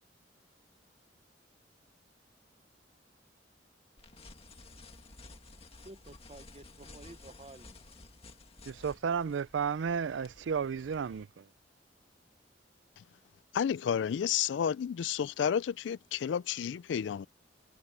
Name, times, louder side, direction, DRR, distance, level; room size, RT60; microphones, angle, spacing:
sound 1, 4.0-11.2, left 2 dB, 35° left, 2.0 m, -54 dB
voice 1, 5.8-7.9, right 2 dB, 35° right, 0.9 m, -52 dB
voice 2, 8.7-11.5, right 6 dB, 85° right, 0.4 m, -33 dB
voice 3, 13.5-17.3, left 8 dB, 75° left, 0.3 m, -31 dB
head